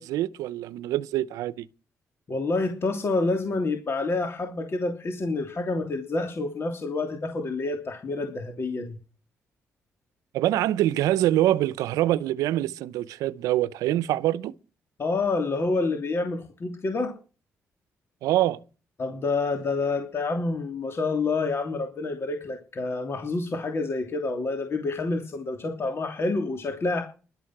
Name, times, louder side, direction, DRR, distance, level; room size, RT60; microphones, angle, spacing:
voice 1, 0.0-1.6 10.3-14.5 18.2-18.6, right 14 dB, 90° right, 0.7 m, -25 dB
voice 2, 2.3-9.0 15.0-17.1 19.0-27.0, left 3 dB, 50° left, 3.0 m, -28 dB
13.0 x 12.0 x 6.0 m
supercardioid pair, 65°, 6 cm